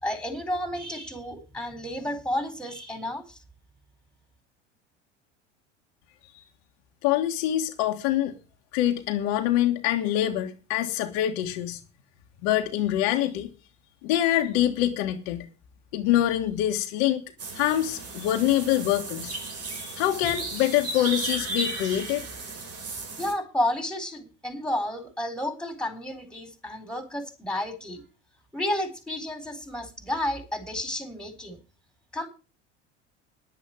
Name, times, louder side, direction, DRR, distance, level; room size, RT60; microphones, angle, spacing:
voice 1, 0.0-3.4 23.2-28.0 28.5-31.6 32.1-32.3, left 1 dB, ahead, 4.3 m, -31 dB
voice 2, 7.0-8.3 8.7-11.8 12.4-13.5 14.0-15.5 15.9-17.2 17.5-19.4 19.8-22.2, left 12 dB, 65° left, 1.6 m, -25 dB
sound 1, 17.4-23.3, right 3 dB, 40° right, 5.1 m, -35 dB
10.5 x 8.5 x 7.7 m
hypercardioid pair, 75°, 35 cm